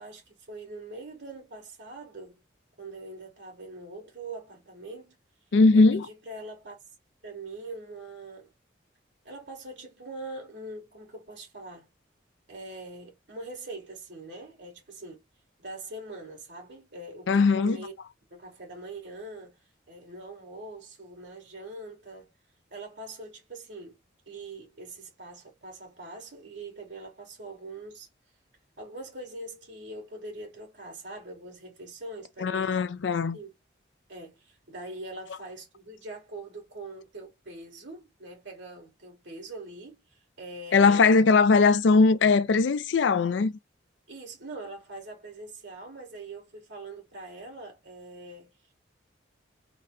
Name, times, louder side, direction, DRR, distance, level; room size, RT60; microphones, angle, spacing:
voice 1, 0.0-2.4 2.8-5.2 5.7-6.8 7.2-8.5 9.2-11.9 12.5-15.2 15.6-17.9 18.3-19.6 19.9-22.3 22.7-24.0 24.3-28.1 28.8-32.9 33.3-33.6 34.1-41.2 44.1-48.5, right 2 dB, 70° right, 2.1 m, -43 dB
voice 2, 5.5-6.1 17.3-17.8 32.4-33.4 40.7-43.5, left 4 dB, 70° left, 0.4 m, -20 dB
3.9 x 2.2 x 3.8 m
head